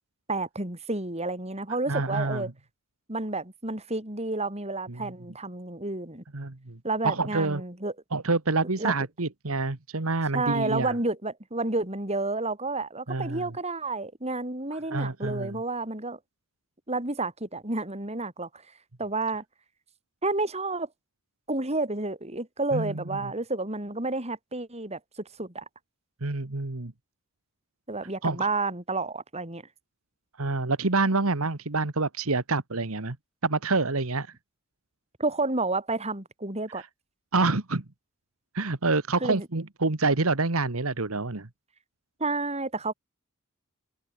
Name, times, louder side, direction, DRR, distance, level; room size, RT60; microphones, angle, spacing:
voice 1, 0.3-2.5 3.1-6.2 6.8-7.9 8.8-8.9 10.3-16.2 16.9-18.5 19.0-19.4 20.2-20.9 21.5-25.0 25.4-25.6 27.9-29.6 35.2-36.8 39.2-39.5 42.2-42.9, right 2 dB, 30° right, 5.5 m, -30 dB
voice 2, 1.9-2.4 4.9-5.1 6.3-6.8 7.0-7.6 8.1-10.9 13.1-13.5 14.9-15.6 22.7-23.3 26.2-26.9 28.2-28.5 30.4-33.2 33.4-34.3 36.7-36.8 37.3-37.8 38.5-41.5, right 3 dB, 75° right, 1.6 m, -27 dB
open air
head